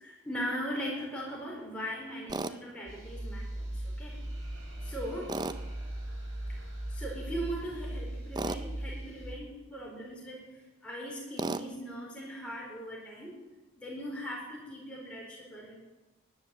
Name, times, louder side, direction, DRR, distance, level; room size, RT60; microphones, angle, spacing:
voice 1, 0.0-4.3 4.8-5.6 6.9-10.4 10.8-13.4 13.8-15.7, equal, 5° left, -5 dB, 4.4 m, -39 dB
Tools, 2.3-2.6 5.3-5.6 8.3-8.6 11.4-11.7, right 2 dB, 20° right, 0.5 m, -33 dB
sound 1, 2.9-9.3, right 1 dB, 60° right, 5.3 m, -39 dB
12.0 x 10.0 x 7.9 m, 1.1 s
head